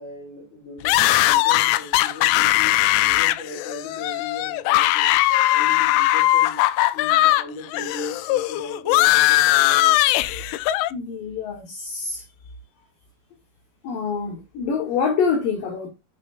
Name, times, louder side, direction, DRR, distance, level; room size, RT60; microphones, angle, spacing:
voice 1, 0.0-6.6 6.9-10.0, left 2 dB, 20° left, 3.8 m, -38 dB
sound 1, 0.9-7.4 7.7-10.9, left 16 dB, 85° left, 2.5 m, -19 dB
voice 2, 10.9-12.2 13.8-15.9, left 5 dB, 65° left, 2.9 m, -26 dB
9.2 x 6.8 x 2.5 m
omnidirectional pair, 4.4 m